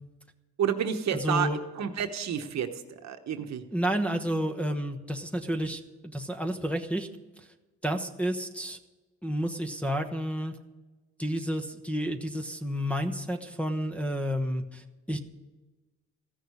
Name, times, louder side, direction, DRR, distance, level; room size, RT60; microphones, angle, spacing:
voice 1, 0.6-1.5 1.7-3.6, right 8 dB, 65° right, 7 dB, 1.2 m, -30 dB
voice 2, 1.2-1.6 3.7-7.1 7.8-8.8 9.2-10.5 11.2-15.2, equal, 5° left, 7 dB, 1.1 m, -30 dB
14.5 x 6.5 x 9.6 m, 1.2 s
cardioid pair, 90°, 30 cm